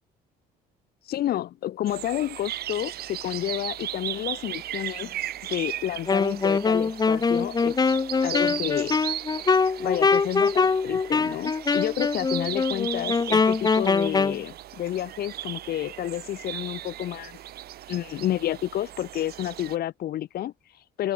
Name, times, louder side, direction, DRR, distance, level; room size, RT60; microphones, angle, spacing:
voice 1, 1.0-5.2 5.5-8.0 8.2-9.0 9.8-17.4 17.9-21.1, left 12 dB, 65° left, 4.7 m, -30 dB
sound 1, 1.9-19.8, right 13 dB, 70° right, 7.1 m, -37 dB
Wind instrument woodwind instrument, 6.1-14.4, left 4 dB, 25° left, 1.5 m, -23 dB
open air
cardioid pair, 110°, 17 cm